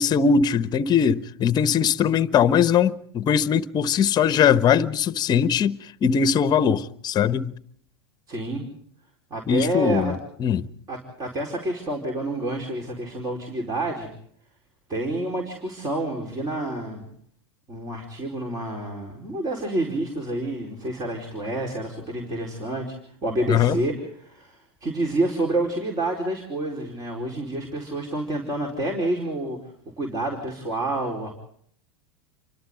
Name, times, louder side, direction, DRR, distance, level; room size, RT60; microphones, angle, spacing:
voice 1, 0.0-7.5 9.5-10.1 10.4-10.6 23.5-23.8, left 7 dB, 30° left, 1.1 m, -21 dB
voice 2, 8.3-8.6 9.3-10.1 10.9-14.1 14.9-17.0 17.7-22.9 23.2-29.6 30.0-31.3, right 1 dB, 30° right, 4.7 m, -28 dB
29.0 x 24.5 x 3.9 m
hypercardioid pair, 95°, 13 cm